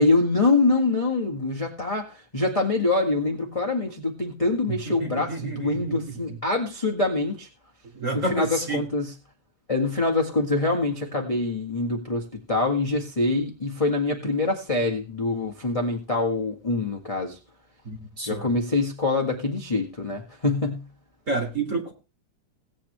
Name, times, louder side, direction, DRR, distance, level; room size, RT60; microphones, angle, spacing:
voice 1, 0.0-7.5 8.1-9.1 9.7-17.4 18.3-20.8, left 3 dB, 15° left, 1 dB, 1.4 m, -25 dB
voice 2, 4.7-6.4 7.9-8.9 17.8-18.5 21.3-21.9, right 3 dB, 25° right, 2 dB, 2.8 m, -30 dB
18.5 x 8.8 x 3.3 m, 0.31 s
omnidirectional pair, 3.3 m